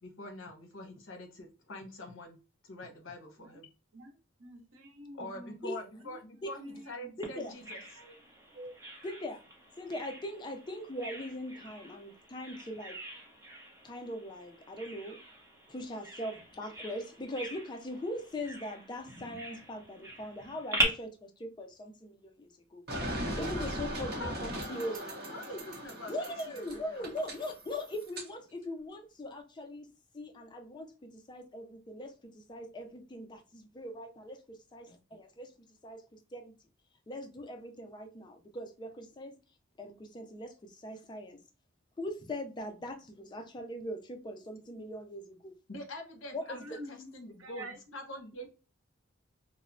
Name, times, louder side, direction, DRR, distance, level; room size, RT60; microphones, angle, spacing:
voice 1, 0.0-2.4 2.6-3.7 5.1-7.8 24.2-24.3 24.6-27.0 45.7-48.5, left 1 dB, 70° left, 0.8 m, -45 dB
voice 2, 4.4-5.8 6.6-7.1 8.0-8.1 8.5-8.7 46.6-47.1 47.4-47.8, right 1 dB, 80° right, 0.7 m, -47 dB
voice 3, 7.2-7.5 9.0-9.4 9.8-13.0 13.8-15.2 15.7-22.8 23.3-25.1 26.1-29.9 30.1-35.5 35.8-36.5 37.1-39.4 39.8-41.4 42.0-45.5 46.3-46.8, left 1 dB, 20° left, 0.3 m, -41 dB
Bird vocalization bird call bird song, 7.2-20.8, right 1 dB, 15° right, 0.7 m, -41 dB
sound 1, 22.9-28.3, equal, 50° right, 0.7 m, -39 dB
3.0 x 2.0 x 2.5 m
head